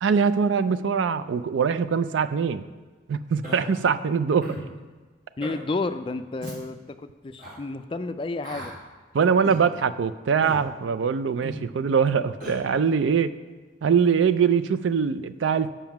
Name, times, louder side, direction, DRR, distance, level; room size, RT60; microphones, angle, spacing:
voice 1, 0.0-2.6 3.1-4.6 9.1-13.3 13.8-15.7, right 6 dB, 90° right, 13 dB, 0.4 m, -23 dB
Human voice, 3.4-3.6 4.4-4.7 5.4-5.6 6.4-6.6 7.4-7.6 8.4-8.7 9.4-9.6 10.4-10.6 11.4-11.6 12.4-12.6, right 1 dB, 45° right, 1.8 m, -36 dB
voice 2, 5.4-8.7, left 3 dB, 30° left, 10 dB, 0.3 m, -31 dB
7.3 x 5.6 x 5.8 m, 1.4 s
head